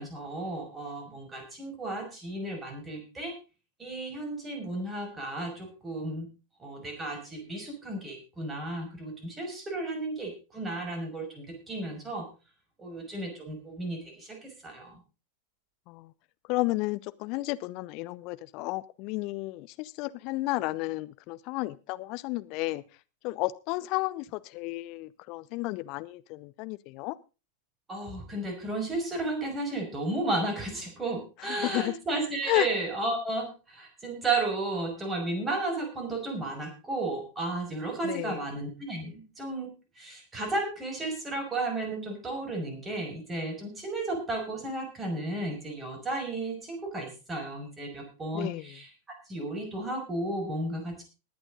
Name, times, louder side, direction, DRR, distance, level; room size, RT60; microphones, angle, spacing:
voice 1, 0.0-3.3 3.8-6.3 6.6-12.3 12.8-15.0 27.9-48.9 49.3-51.0, right 2 dB, 15° right, 3 dB, 5.6 m, -33 dB
voice 2, 16.5-22.8 23.2-27.2 31.4-31.9 32.5-32.7 38.0-38.4 48.3-48.7, left 21 dB, 45° left, 15 dB, 0.8 m, -32 dB
20.0 x 8.9 x 3.8 m, 0.31 s
figure-of-eight pair, 90°, 0 cm